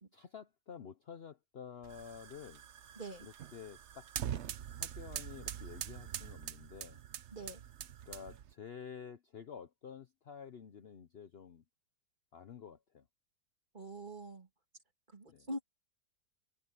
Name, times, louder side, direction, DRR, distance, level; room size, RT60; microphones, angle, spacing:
voice 1, 0.1-2.6 3.2-4.1 4.8-7.0 8.1-11.6 12.3-13.0 15.3-15.5, left 7 dB, 50° left, 0.8 m, -50 dB
sound 1, 1.8-8.5, right 10 dB, 55° right, 0.8 m, -44 dB
voice 2, 3.0-3.3 7.3-7.6 13.7-14.5 15.1-15.7, right 1 dB, 30° right, 2.5 m, -44 dB
omnidirectional pair, 1.7 m